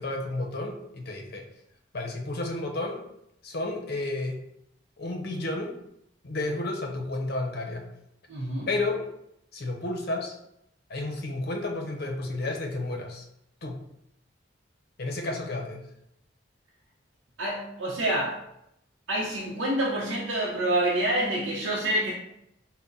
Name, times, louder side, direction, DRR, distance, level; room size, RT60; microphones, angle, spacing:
voice 1, 0.0-1.4 1.9-3.0 3.4-4.4 5.0-5.7 6.2-7.8 8.7-9.0 9.5-10.4 10.9-13.2 13.6-13.8 15.0-15.8, left 2 dB, 55° left, 2 dB, 0.6 m, -31 dB
voice 2, 8.3-8.7 17.4-18.4 19.1-22.1, right 1 dB, 90° right, -6 dB, 0.7 m, -27 dB
5.7 x 2.1 x 2.6 m, 0.80 s
head